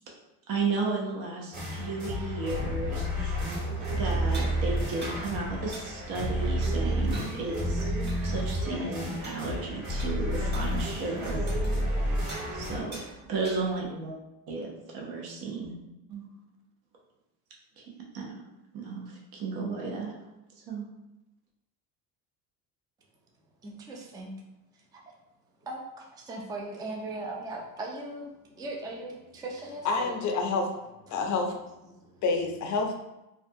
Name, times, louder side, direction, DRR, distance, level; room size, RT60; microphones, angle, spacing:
voice 1, 0.5-3.1 3.9-7.8 8.2-11.4 12.5-13.0 13.3-14.1 14.5-15.7 16.1-16.2 17.8-18.3 18.8-20.1 20.7-20.8, right 3 dB, 60° right, -1 dB, 0.7 m, -33 dB
sound 1, 1.5-12.8, equal, 45° right, 1.4 m, -30 dB
sound 2, 3.5-14.0, right 1 dB, 25° right, 0.7 m, -46 dB
voice 2, 23.6-24.3 24.7-25.1 25.6-30.2 31.1-31.5 31.9-32.2, right 2 dB, 10° right, -1 dB, 0.3 m, -39 dB
voice 3, 29.8-30.7 31.1-31.5 32.2-32.9, left 4 dB, 45° left, 3 dB, 0.5 m, -27 dB
2.4 x 2.2 x 2.6 m, 0.95 s
supercardioid pair, 100°, 41 cm